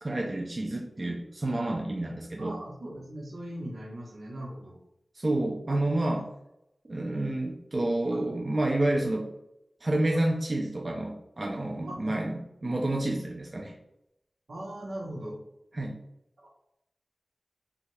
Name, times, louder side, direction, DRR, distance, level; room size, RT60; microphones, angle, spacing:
voice 1, 0.0-2.6 5.2-6.3 6.8-9.3 9.8-13.7 15.7-16.0, right 1 dB, 40° right, 0 dB, 0.4 m, -29 dB
voice 2, 2.4-4.8 5.7-5.8 6.1-6.3 8.1-8.3 10.1-10.2 11.9-12.2 14.5-15.4 16.4-16.5, right 1 dB, 75° right, -2 dB, 0.9 m, -40 dB
2.6 x 2.4 x 3.1 m, 0.83 s
wide cardioid pair, 85°, 0 cm